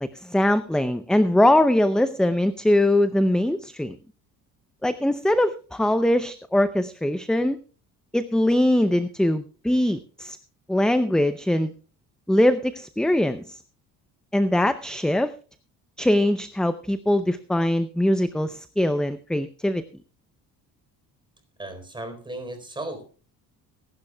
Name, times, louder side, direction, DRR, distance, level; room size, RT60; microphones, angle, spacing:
voice 1, 0.0-4.0 4.8-7.6 8.1-10.4 10.7-11.7 12.3-13.6 14.3-15.3 16.0-19.8, left 1 dB, ahead, 12 dB, 0.5 m, -22 dB
voice 2, 21.6-23.1, right 2 dB, 15° right, 7 dB, 4.1 m, -35 dB
23.5 x 11.5 x 2.3 m, 0.37 s
cardioid pair, 130°, 34 cm